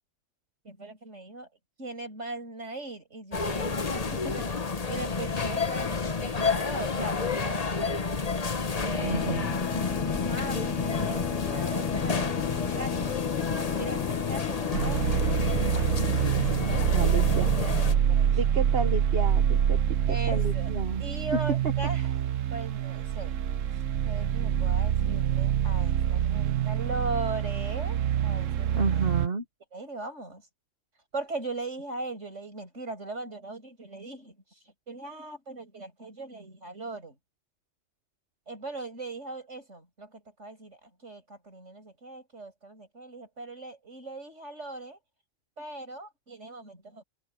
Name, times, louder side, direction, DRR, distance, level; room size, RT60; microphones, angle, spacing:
voice 1, 0.6-1.5 1.8-8.0 8.8-9.4 10.1-13.2 13.7-16.0 16.5-18.4 20.1-20.7 21.0-22.2 22.5-23.4 24.1-29.1 29.7-30.5 31.1-34.4 34.9-37.2 38.5-45.0 45.6-47.0, right 2 dB, 70° right, 7.1 m, -39 dB
sound 1, 3.3-17.9, left 4 dB, 35° left, 1.1 m, -30 dB
sound 2, 9.0-18.3, left 12 dB, 80° left, 1.0 m, -36 dB
voice 2, 9.0-9.6 16.9-17.5 18.3-19.8 20.1-21.0 28.8-29.4, right 4 dB, 50° right, 1.6 m, -31 dB
sound 3, 14.7-29.3, right 9 dB, 85° right, 1.2 m, -26 dB
omnidirectional pair, 1.3 m